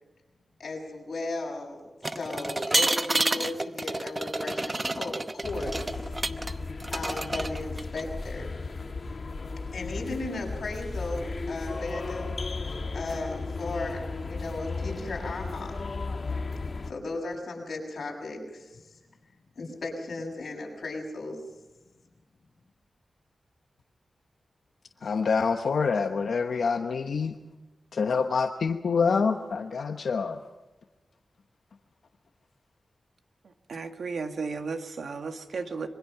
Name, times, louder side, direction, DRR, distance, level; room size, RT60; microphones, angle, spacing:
voice 1, 0.6-1.8 2.1-6.1 6.9-8.5 9.5-12.3 12.9-15.8 16.9-19.0 19.5-21.4, left 2 dB, 60° left, 0 dB, 7.1 m, -36 dB
sound 1, 2.0-6.5 6.8-8.0, right 2 dB, 25° right, 0.9 m, -29 dB
sound 2, 5.4-16.9, left 3 dB, 45° left, 1.7 m, -35 dB
voice 2, 25.0-27.3 27.9-30.4, left 5 dB, 80° left, 4 dB, 1.1 m, -26 dB
voice 3, 33.7-35.9, right 4 dB, 75° right, 6 dB, 1.8 m, -34 dB
26.5 x 23.5 x 5.9 m, 1.1 s
wide cardioid pair, 140°, 0 cm